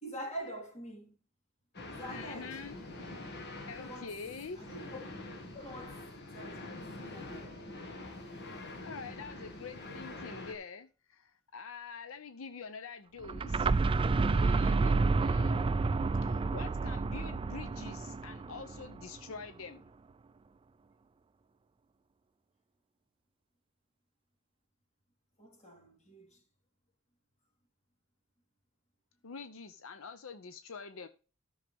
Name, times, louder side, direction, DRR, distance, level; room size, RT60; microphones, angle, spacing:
voice 1, 0.0-1.2 1.9-2.6 3.8-4.2 4.6-5.0 5.5-7.6 25.4-26.4, right 1 dB, 35° left, 3.6 m, -45 dB
sound 1, 1.7-10.5, left 2 dB, 55° left, 1.9 m, -45 dB
voice 2, 2.1-2.8 3.7-4.6 8.8-13.7 14.2-15.6 16.2-19.9 29.2-31.1, left 5 dB, 75° left, 0.7 m, -46 dB
sound 2, 13.2-19.0, right 3 dB, 25° right, 0.3 m, -29 dB
13.0 x 6.4 x 3.5 m
head